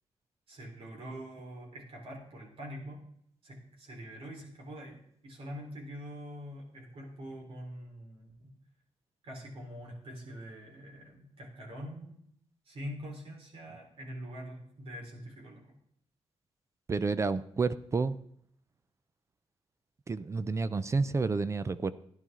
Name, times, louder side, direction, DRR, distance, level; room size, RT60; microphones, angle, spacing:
voice 1, 0.5-3.0 3.4-8.5 9.2-12.2 12.7-15.8, equal, 55° right, 0 dB, 3.9 m, -44 dB
voice 2, 16.9-18.2 20.1-21.9, right 4 dB, 25° right, 15 dB, 0.4 m, -30 dB
13.5 x 10.5 x 3.7 m, 0.69 s
wide cardioid pair, 140°, 11 cm